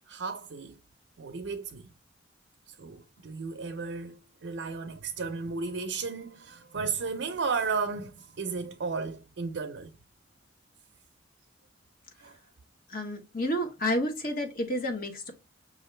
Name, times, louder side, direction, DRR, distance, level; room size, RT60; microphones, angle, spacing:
voice 1, 0.1-0.8 1.2-1.9 2.7-10.0 12.2-12.4, right 4 dB, 75° right, 0.5 m, -34 dB
voice 2, 12.9-15.3, left 1 dB, 50° left, 1.0 m, -30 dB
5.8 x 2.5 x 3.1 m
head